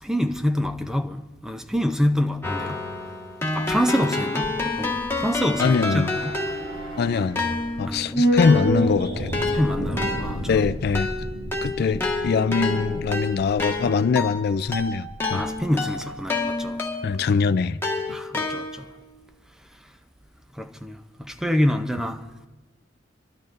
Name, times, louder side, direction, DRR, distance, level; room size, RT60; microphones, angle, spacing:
voice 1, 0.0-2.8 3.5-6.4 7.9-8.3 9.5-10.6 15.3-16.8 18.1-18.9 20.6-22.5, equal, 5° right, 0.6 m, -26 dB
Keyboard (musical), 2.4-6.9 7.4-17.3 17.8-19.0, left 2 dB, 15° left, 1.5 m, -29 dB
sound 1, 4.9-15.2 15.5-15.6, equal, 85° right, 5.6 m, -30 dB
voice 2, 5.6-6.2 7.0-9.4 10.5-11.1 11.6-15.4 17.0-17.8, left 5 dB, 55° left, 0.4 m, -23 dB
26.0 x 12.0 x 2.6 m
head